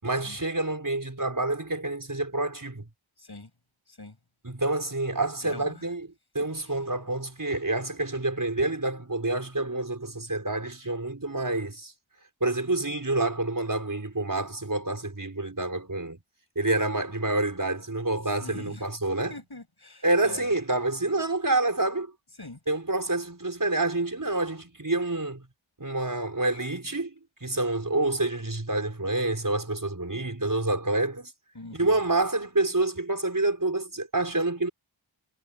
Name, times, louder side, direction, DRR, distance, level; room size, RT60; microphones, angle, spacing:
voice 1, 0.0-2.8 4.4-6.1 6.3-11.9 12.4-16.2 16.6-19.3 20.0-22.1 22.7-25.4 25.8-27.1 27.4-31.3 31.7-34.7, right 2 dB, 40° right, 5.4 m, -28 dB
voice 2, 3.2-3.5 3.9-4.2 5.4-5.9 6.4-6.8 18.4-18.9 19.3-20.5 22.4-22.6 31.5-32.0, left 2 dB, 50° left, 7.8 m, -44 dB
wide cardioid pair, 55°, 48 cm